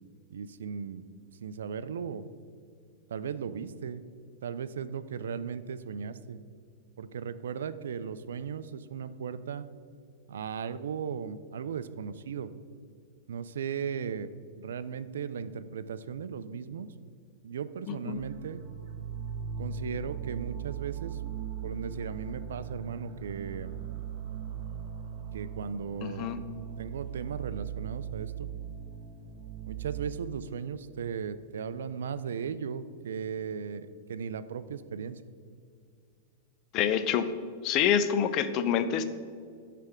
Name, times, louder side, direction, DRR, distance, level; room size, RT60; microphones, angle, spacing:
voice 1, 0.3-1.0 1.4-2.2 3.1-4.0 4.4-6.4 7.0-9.7 10.3-12.5 13.3-14.3 14.6-16.9 17.4-18.6 19.6-21.2 21.6-23.8 25.3-26.3 26.8-28.5 29.7-35.2, right 7 dB, 75° right, 14 dB, 0.3 m, -37 dB
voice 2, 17.9-18.2 26.0-26.4 36.7-37.3 37.6-39.0, left 8 dB, 40° left, 11 dB, 0.5 m, -27 dB
sound 1, 18.1-30.1, right 8 dB, 50° right, 0.8 m, -39 dB
9.6 x 3.4 x 6.1 m, 2.2 s
hypercardioid pair, 100°, 0 cm